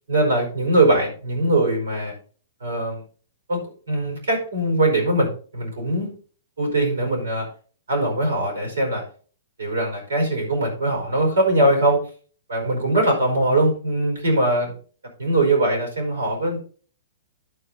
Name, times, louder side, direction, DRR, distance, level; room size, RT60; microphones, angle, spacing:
voice 1, 0.1-2.1 2.6-3.0 3.5-3.6 3.9-6.1 6.6-7.5 7.9-9.0 9.6-12.0 12.5-14.7 15.2-16.6, right 1 dB, 75° right, 2 dB, 4.8 m, -21 dB
11.0 x 5.0 x 4.1 m, 0.41 s
hypercardioid pair, 115°, 0 cm